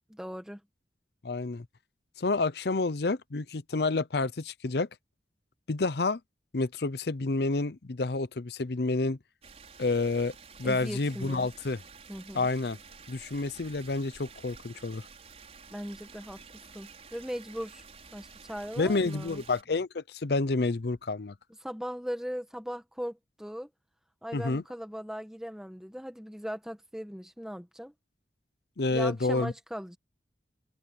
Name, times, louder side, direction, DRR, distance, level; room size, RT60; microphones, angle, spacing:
voice 1, 0.1-0.6 10.6-11.5 12.1-12.5 15.7-17.8 18.1-19.4 21.6-23.7 24.2-27.9 28.9-30.0, equal, 5° right, 1.5 m, -39 dB
voice 2, 1.2-1.7 2.2-4.9 5.7-6.2 6.5-9.2 9.8-11.8 12.3-12.8 13.1-15.1 18.8-21.4 24.3-24.6 28.8-29.5, left 3 dB, 65° left, 0.7 m, -29 dB
sound 1, 9.4-19.6, right 5 dB, 35° right, 6.1 m, -51 dB
head